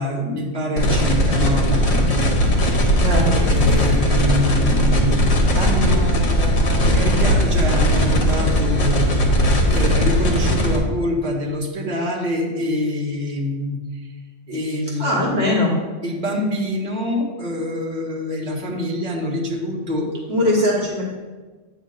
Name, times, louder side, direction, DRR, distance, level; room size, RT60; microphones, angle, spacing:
voice 1, 0.0-2.9 3.3-13.8 14.5-15.3 16.0-20.5, left 1 dB, 40° right, -2 dB, 1.5 m, -26 dB
sound 1, 0.8-10.8, equal, 60° left, 1.3 m, -18 dB
voice 2, 3.0-3.3 15.0-15.8 20.3-21.0, left 1 dB, 55° right, -3 dB, 1.4 m, -20 dB
9.1 x 3.1 x 6.5 m, 1.3 s
omnidirectional pair, 1.2 m